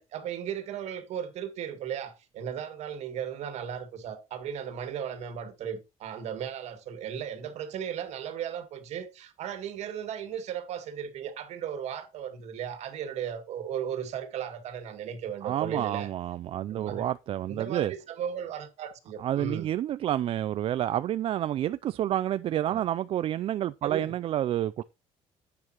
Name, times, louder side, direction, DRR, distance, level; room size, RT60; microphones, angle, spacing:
voice 1, 0.0-16.1 16.6-17.1 17.5-19.7 22.6-22.8 23.8-24.2, right 8 dB, 65° right, 2.1 m, -36 dB
voice 2, 15.4-17.9 19.2-24.8, right 12 dB, 50° right, 0.4 m, -29 dB
10.5 x 8.7 x 3.0 m
cardioid pair, 125°, 12 cm